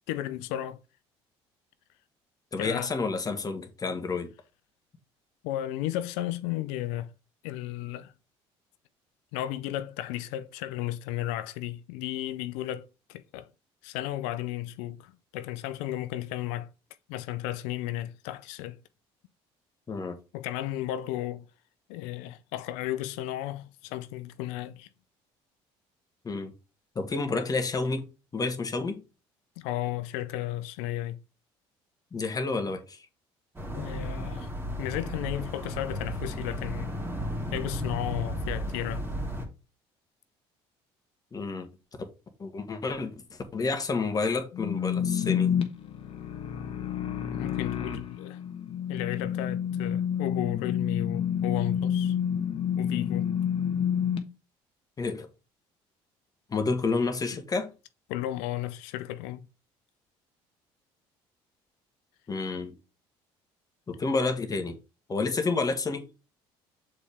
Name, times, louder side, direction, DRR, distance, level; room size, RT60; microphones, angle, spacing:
voice 1, 0.1-0.8 2.6-2.9 5.4-7.1 7.4-8.1 9.3-13.5 13.8-16.7 17.1-18.8 20.3-21.5 21.9-24.9 29.6-31.2 33.7-34.5 34.8-36.9 37.5-39.1 47.3-48.4 48.9-52.1 52.8-53.3 58.1-59.5, left 14 dB, 85° left, 0.5 m, -34 dB
voice 2, 2.5-4.3 19.9-20.2 26.2-26.5 26.9-29.0 32.1-33.0 41.3-41.7 42.4-45.5 55.0-55.3 56.5-57.7 62.3-62.7 63.9-64.7 65.1-66.1, left 3 dB, 30° left, 1.5 m, -30 dB
sound 1, 33.5-39.5, equal, 20° right, 2.5 m, -34 dB
sound 2, 44.5-54.2, left 8 dB, 50° left, 1.3 m, -29 dB
6.9 x 4.3 x 3.4 m
supercardioid pair, 80°, 12 cm